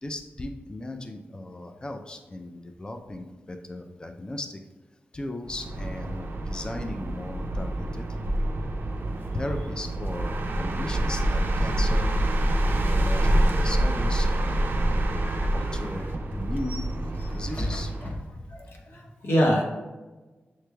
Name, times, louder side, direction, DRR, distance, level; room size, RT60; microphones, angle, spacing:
voice 1, 0.0-4.6 5.1-8.1 9.0-12.2 12.7-14.9 15.5-16.1 16.3-16.8 17.3-18.5, left 1 dB, 20° left, 5 dB, 0.4 m, -37 dB
sound 1, 5.5-18.1, right 1 dB, 60° right, 0.5 m, -26 dB
sound 2, 15.0-18.8, left 1 dB, 40° left, 0.8 m, -40 dB
voice 2, 18.5-19.6, equal, 75° left, -1 dB, 0.9 m, -25 dB
6.7 x 3.2 x 2.2 m, 1.2 s
wide cardioid pair, 135°, 4 cm